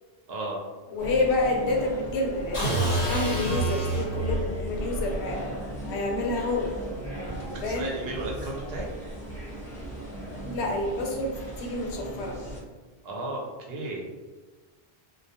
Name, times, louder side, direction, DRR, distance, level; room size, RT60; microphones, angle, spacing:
voice 1, 0.3-0.6 7.4-8.9 13.0-14.0, right 2 dB, 70° right, -1 dB, 0.8 m, -34 dB
voice 2, 0.9-5.6 5.9-6.7 7.6-7.9 10.4-12.4, left 2 dB, 90° left, 1 dB, 0.9 m, -28 dB
sound 1, 1.0-12.6, right 1 dB, 5° left, 0.8 m, -36 dB
sound 2, 2.5-4.5, right 2 dB, 65° left, 1.0 m, -27 dB
2.3 x 2.2 x 2.7 m, 1.3 s
omnidirectional pair, 1.1 m